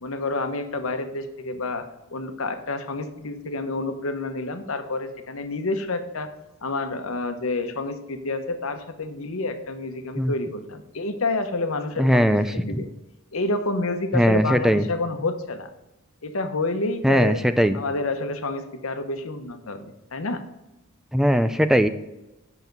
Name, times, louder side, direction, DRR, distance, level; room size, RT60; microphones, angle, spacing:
voice 1, 0.0-6.3 6.6-12.9 13.3-15.7 16.2-17.4 17.7-20.4, left 2 dB, 80° left, 8 dB, 1.0 m, -29 dB
voice 2, 12.0-12.5 14.1-14.8 17.0-17.8 21.1-21.9, equal, ahead, 10 dB, 0.3 m, -19 dB
8.2 x 6.0 x 5.2 m, 0.97 s
head